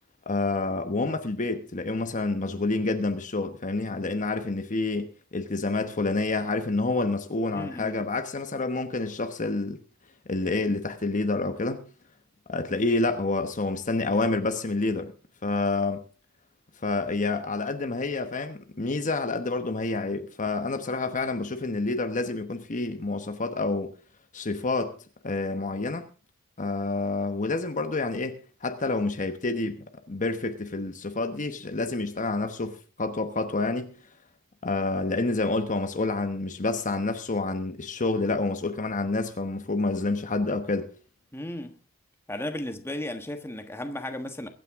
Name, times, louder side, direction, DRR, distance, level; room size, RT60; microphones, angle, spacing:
voice 1, 0.3-9.8 10.3-11.8 12.5-15.1 15.4-16.0 16.8-23.9 24.3-24.9 25.2-26.1 26.6-28.3 28.6-29.8 30.1-33.9 34.6-40.9, left 3 dB, 35° left, 1.1 m, -28 dB
voice 2, 7.5-8.1 41.3-41.8 42.3-44.5, left 1 dB, 10° left, 1.4 m, -35 dB
23.0 x 9.2 x 3.6 m
head